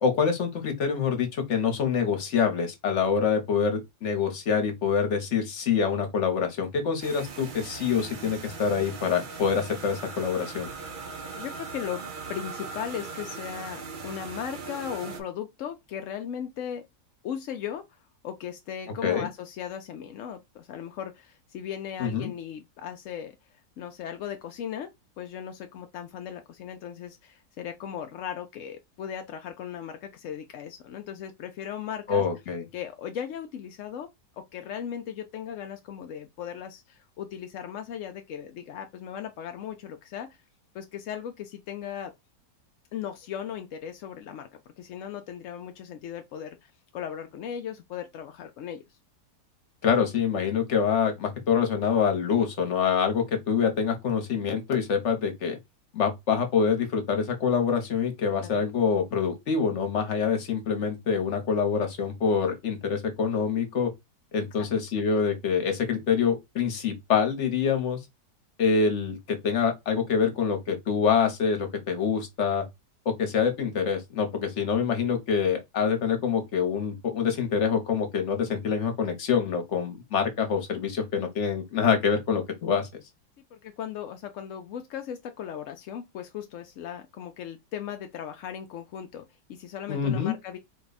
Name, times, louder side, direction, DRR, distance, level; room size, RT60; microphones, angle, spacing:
voice 1, 0.0-10.7 19.0-19.3 22.0-22.3 32.1-32.6 49.8-55.6 55.9-63.9 64.3-68.0 68.6-72.7 73.0-82.9 89.9-90.3, left 6 dB, 50° left, 1.2 m, -26 dB
sound 1, 7.0-15.2, right 4 dB, 65° right, 0.4 m, -39 dB
voice 2, 11.3-12.0 12.3-16.8 17.2-18.0 18.2-23.4 23.8-24.9 25.2-32.2 32.7-34.1 34.4-40.4 40.7-42.1 42.9-44.5 44.8-48.8 58.3-58.6 83.5-90.6, left 9 dB, 70° left, 0.7 m, -37 dB
4.3 x 2.3 x 4.0 m
omnidirectional pair, 1.8 m